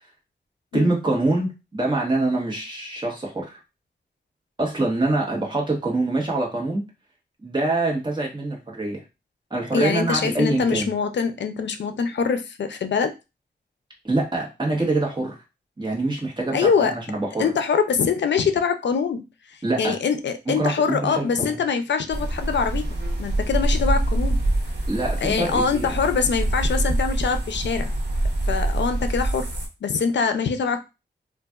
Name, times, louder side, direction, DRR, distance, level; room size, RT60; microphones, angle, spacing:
voice 1, 0.7-3.6 4.6-6.8 7.4-9.0 9.5-10.9 14.0-15.3 15.8-17.5 19.6-20.0 20.5-21.6 24.9-25.9, right 2 dB, 25° right, -2 dB, 1.2 m, -25 dB
voice 2, 9.7-13.2 16.5-16.9 17.4-22.8 23.2-24.4 25.2-27.9 28.5-29.5 29.8-30.8, left 6 dB, 80° left, 8 dB, 0.4 m, -24 dB
sound 1, 22.1-29.7, right 1 dB, 75° right, 0.9 m, -25 dB
3.9 x 2.5 x 2.3 m, 0.26 s
wide cardioid pair, 115°, 18 cm